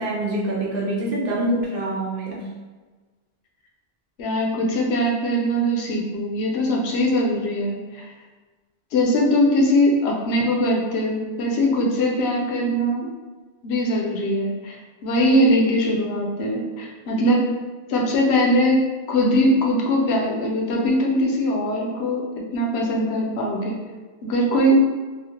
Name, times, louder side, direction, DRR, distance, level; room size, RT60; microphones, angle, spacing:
voice 1, 0.0-2.5, right 1 dB, 65° right, -3 dB, 0.8 m, -25 dB
voice 2, 4.2-8.1 8.9-13.1 13.6-17.4 17.9-22.3 22.5-23.8 24.2-24.8, equal, 90° left, -1 dB, 0.9 m, -21 dB
3.1 x 2.3 x 2.8 m, 1.3 s
omnidirectional pair, 1.0 m